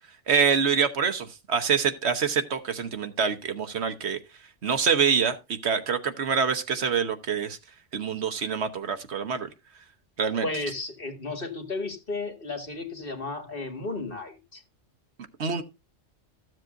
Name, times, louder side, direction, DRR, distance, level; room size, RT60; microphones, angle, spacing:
voice 1, 0.3-4.2 4.6-7.6 7.9-9.5 10.2-10.5 15.4-15.6, right 6 dB, 65° right, 1.3 m, -25 dB
voice 2, 10.4-14.6, left 3 dB, 50° left, 2.0 m, -33 dB
14.5 x 7.6 x 2.6 m
omnidirectional pair, 1.2 m